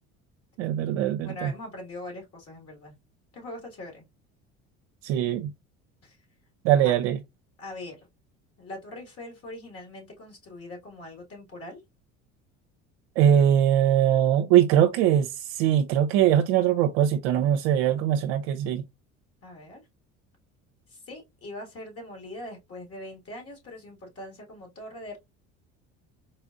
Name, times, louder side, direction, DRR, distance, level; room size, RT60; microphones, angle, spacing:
voice 1, 0.6-1.5 5.0-5.5 6.6-7.2 13.2-18.8, right 10 dB, 80° right, 0.5 m, -22 dB
voice 2, 1.2-2.9 3.3-4.0 6.0-6.2 6.8-6.9 7.6-8.1 8.6-11.8 19.4-19.8 20.9-25.2, left 1 dB, 45° left, 2.0 m, -41 dB
4.2 x 2.4 x 2.4 m
supercardioid pair, 80°, 33 cm